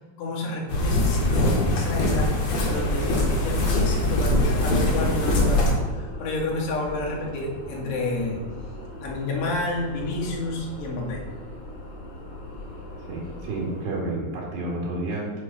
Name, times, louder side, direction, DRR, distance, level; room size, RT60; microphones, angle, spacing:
voice 1, 0.2-2.3 2.7-8.4 9.0-11.2, left 2 dB, 80° left, -2 dB, 3.9 m, -30 dB
sound 1, 0.7-5.7, left 1 dB, 50° left, 1.9 m, -22 dB
sound 2, 2.0-13.9, left 1 dB, 35° left, 2.4 m, -38 dB
voice 2, 13.1-15.4, right 2 dB, 85° right, -3 dB, 4.3 m, -30 dB
9.6 x 6.5 x 4.2 m, 1.3 s
omnidirectional pair, 4.7 m